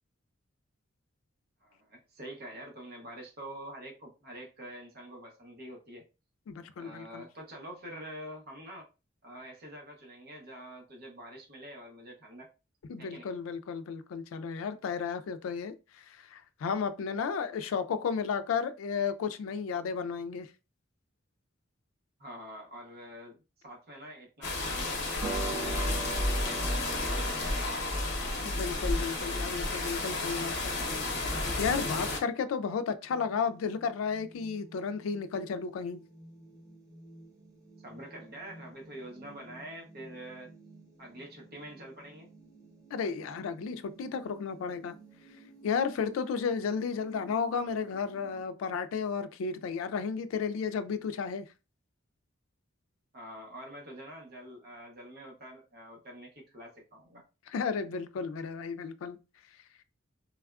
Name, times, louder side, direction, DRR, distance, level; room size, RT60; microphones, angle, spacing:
voice 1, 1.6-6.0 6.8-8.9 9.2-12.5 13.0-13.3 22.2-25.2 25.5-28.0 37.8-40.5 41.0-42.3 53.1-57.2, equal, 50° right, 0.9 m, -46 dB
voice 2, 6.5-7.2 12.9-20.5 28.4-30.7 31.6-36.0 42.9-44.9 45.6-51.4 57.5-59.2, left 6 dB, 80° left, 0.3 m, -33 dB
sound 1, 24.4-32.2, left 3 dB, 60° left, 0.8 m, -33 dB
Harp, 25.1-31.9, equal, 70° right, 1.4 m, -35 dB
sound 2, 33.1-48.4, right 2 dB, 15° right, 0.9 m, -54 dB
3.3 x 2.3 x 2.3 m
head